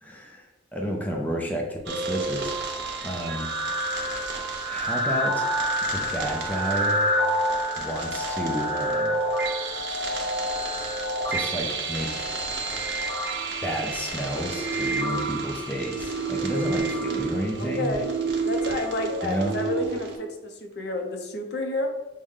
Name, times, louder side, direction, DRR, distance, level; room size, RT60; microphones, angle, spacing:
voice 1, 0.0-3.5 4.7-5.5 5.9-7.0 7.8-9.1 11.3-12.3 13.6-17.9 19.2-19.6, equal, 10° left, 0 dB, 0.5 m, -31 dB
sound 1, 1.9-20.2, right 2 dB, 65° right, 0.9 m, -28 dB
voice 2, 17.6-18.1 18.4-21.9, left 1 dB, 60° left, 4 dB, 0.6 m, -30 dB
6.2 x 2.2 x 3.6 m, 1.0 s
head